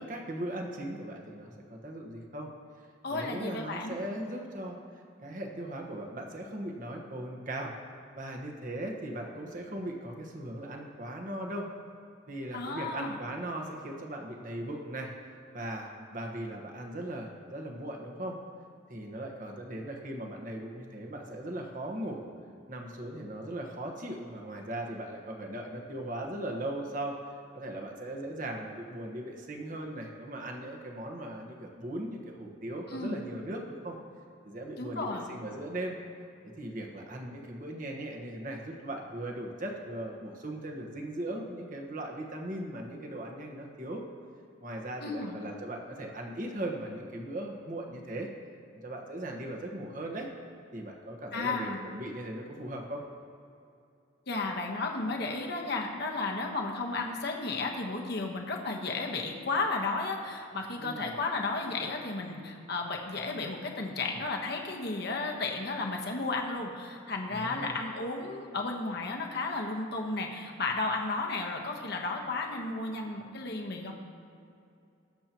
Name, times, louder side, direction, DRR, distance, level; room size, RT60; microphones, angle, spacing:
voice 1, 0.0-2.5 3.1-4.8 5.2-7.7 8.1-11.7 12.3-15.1 15.5-18.4 18.9-22.3 22.7-27.2 27.5-34.0 34.4-36.0 36.4-44.0 44.6-48.3 48.7-50.3 50.7-53.0 60.8-61.1 67.3-67.7, right 1 dB, 40° right, 1 dB, 1.3 m, -38 dB
voice 2, 3.0-4.0 12.5-13.2 32.9-33.2 34.8-35.3 45.0-45.4 51.3-51.8 54.3-73.9, left 3 dB, 55° left, 1 dB, 1.2 m, -33 dB
20.0 x 7.5 x 3.0 m, 2.6 s
head